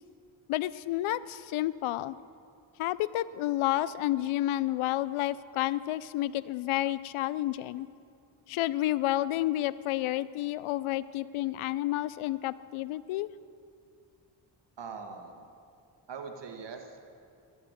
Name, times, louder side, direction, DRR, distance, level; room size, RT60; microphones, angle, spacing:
voice 1, 0.5-2.2 2.8-7.9 8.5-13.3, left 15 dB, 85° left, 18 dB, 0.5 m, -30 dB
voice 2, 14.8-15.5 16.1-17.0, right 5 dB, 60° right, 4 dB, 1.7 m, -42 dB
12.5 x 8.1 x 8.1 m, 2.4 s
cardioid pair, 60°, 48 cm